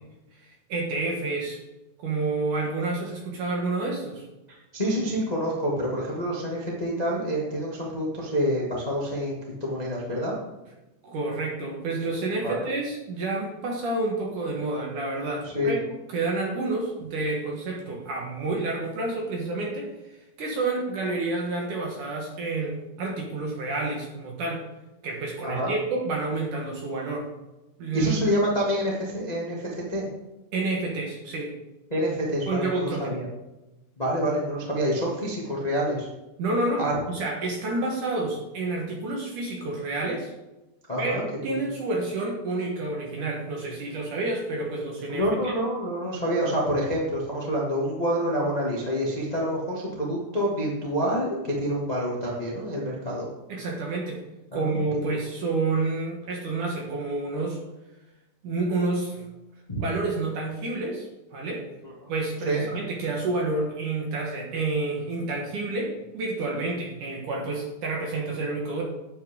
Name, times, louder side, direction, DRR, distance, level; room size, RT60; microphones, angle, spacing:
voice 1, 0.4-1.6 2.0-4.3 11.0-15.8 16.1-24.6 25.0-27.3 27.8-28.1 30.5-31.5 32.5-33.2 36.4-40.3 41.0-45.5 53.5-54.2 54.5-57.6 58.4-59.3 59.8-61.6 62.1-68.8, right 3 dB, 60° right, -1 dB, 2.3 m, -29 dB
voice 2, 4.7-10.4 12.4-12.7 15.4-15.8 25.4-25.7 27.9-30.1 31.9-33.3 34.0-36.1 36.8-36.9 40.9-41.2 41.5-41.6 45.1-53.3 54.5-54.8 59.7-59.8 61.8-62.1 62.4-62.6, equal, 75° left, -4 dB, 0.3 m, -27 dB
12.0 x 8.8 x 3.9 m, 1.0 s
omnidirectional pair, 5.5 m